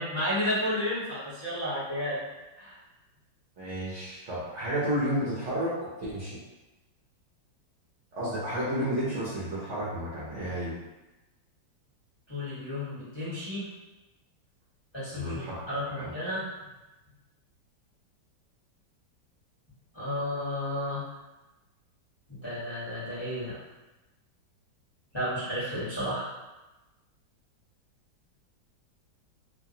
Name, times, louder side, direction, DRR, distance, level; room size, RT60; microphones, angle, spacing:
voice 1, 0.0-2.2 2.6-2.8 12.3-13.7 14.9-16.4 19.9-21.1 22.3-23.6 25.1-26.3, left 1 dB, 20° left, -12 dB, 1.0 m, -32 dB
voice 2, 3.6-6.4 8.1-10.7 15.1-15.6 15.8-16.1, equal, 60° right, -9 dB, 0.8 m, -31 dB
3.1 x 2.4 x 2.7 m, 1.1 s
omnidirectional pair, 2.0 m